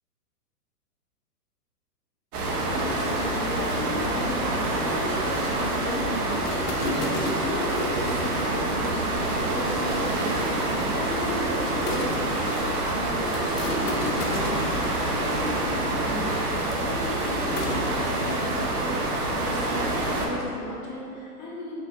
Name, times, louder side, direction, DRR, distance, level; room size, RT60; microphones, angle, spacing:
sound 1, 2.3-20.3, right 2 dB, 70° right, 0.8 m, -27 dB
voice 1, 2.7-21.8, left 1 dB, 30° left, -4 dB, 0.7 m, -35 dB
sound 2, 6.4-12.3 13.3-17.8, left 2 dB, 80° left, 0.8 m, -37 dB
4.0 x 3.2 x 2.4 m, 2.7 s
hypercardioid pair, 130°, 47 cm